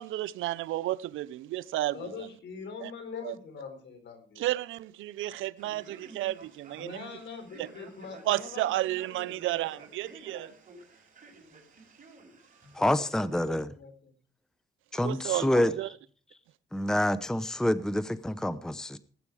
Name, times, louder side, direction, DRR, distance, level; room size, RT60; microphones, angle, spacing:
voice 1, 0.0-2.0 2.8-2.9 3.2-3.3 4.4-7.1 7.6-7.7 8.2-10.5 15.0-15.9, right 15 dB, 85° right, 0.6 m, -32 dB
voice 2, 1.9-4.5 6.7-8.7 9.0-9.8 12.8-12.9 13.2-13.3 13.8-14.1 15.3-15.6, left 5 dB, 65° left, 4.5 m, -43 dB
Male speech man speaking, 5.6-12.9, right 3 dB, 40° right, 5.9 m, -52 dB
voice 3, 12.7-13.7 14.9-15.7 16.7-19.0, left 1 dB, 5° left, 0.8 m, -27 dB
18.5 x 8.5 x 4.8 m
cardioid pair, 90°, 20 cm